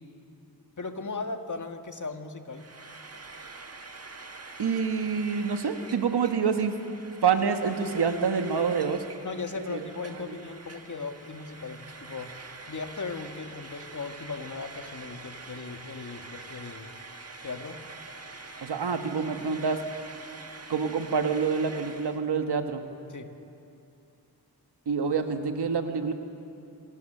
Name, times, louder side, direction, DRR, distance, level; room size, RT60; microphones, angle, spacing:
voice 1, 0.8-2.7 9.2-12.3 12.7-17.0 17.4-17.8 23.1-23.3, left 4 dB, 50° left, 6 dB, 1.7 m, -37 dB
Frying (food), 2.5-22.2, right 3 dB, 40° right, 1.6 m, -45 dB
voice 2, 4.6-6.8 7.2-9.0 9.6-9.8 10.2-10.3 18.6-19.8 20.7-22.8 24.9-26.1, right 6 dB, 80° right, 6 dB, 1.5 m, -27 dB
26.5 x 17.5 x 6.8 m, 2.6 s
wide cardioid pair, 65°, 39 cm